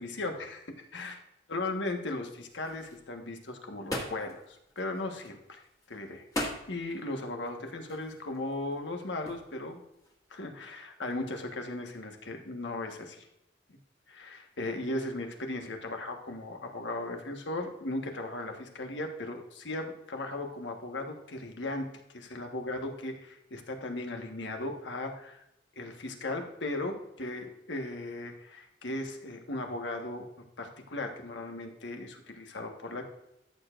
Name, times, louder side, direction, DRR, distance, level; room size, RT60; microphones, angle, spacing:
voice 1, 0.0-1.1 1.5-5.6 5.9-6.2 6.7-9.8 10.3-13.3 14.1-21.9 22.1-25.4 25.8-30.2 30.6-33.0, left 2 dB, 80° left, 4 dB, 1.3 m, -37 dB
sound 1, 2.5-10.4, left 1 dB, 20° left, 1.7 m, -41 dB
13.5 x 7.0 x 2.5 m, 0.84 s
head